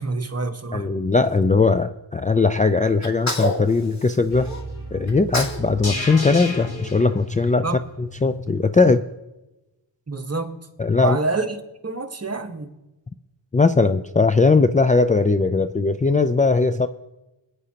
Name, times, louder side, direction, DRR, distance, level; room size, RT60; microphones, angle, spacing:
voice 1, 0.0-0.9 7.6-7.8 10.1-10.7 11.0-11.6 11.8-12.7, right 3 dB, 35° right, 1.3 m, -27 dB
voice 2, 0.7-4.5 4.9-7.7 8.0-9.1 10.8-11.2 13.5-16.9, left 3 dB, 20° left, 0.4 m, -19 dB
Sneeze, 3.0-4.6 5.1-5.7 5.9-7.4, left 1 dB, 35° left, 2.4 m, -29 dB
sound 1, 4.3-8.5 8.8-8.9, left 1 dB, 55° left, 4.4 m, -34 dB
20.5 x 9.7 x 2.9 m
cardioid pair, 55°, 46 cm